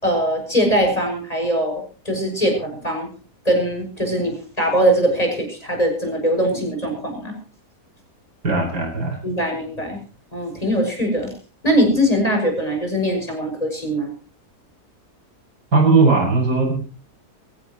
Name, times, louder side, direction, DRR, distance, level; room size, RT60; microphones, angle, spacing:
voice 1, 0.0-3.1 3.4-7.3 9.2-10.0 10.3-11.3 11.6-14.1, equal, 20° left, 2 dB, 6.7 m, -21 dB
voice 2, 8.4-9.2 15.7-16.7, right 3 dB, 85° right, -1 dB, 7.7 m, -17 dB
23.5 x 16.5 x 3.1 m, 0.36 s
omnidirectional pair, 1.7 m